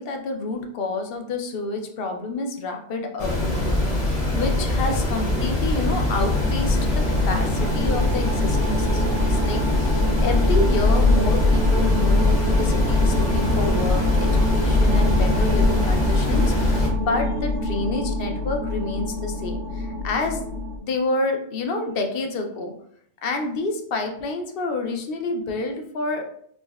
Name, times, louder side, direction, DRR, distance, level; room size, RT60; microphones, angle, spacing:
voice 1, 0.0-20.5 20.8-22.7 23.2-26.2, left 2 dB, 60° left, 4 dB, 0.7 m, -28 dB
sound 1, 3.2-16.9, left 1 dB, 35° left, 0.9 m, -23 dB
sound 2, 6.2-20.8, left 2 dB, 75° right, 0.9 m, -23 dB
5.4 x 2.1 x 2.2 m, 0.66 s
omnidirectional pair, 1.2 m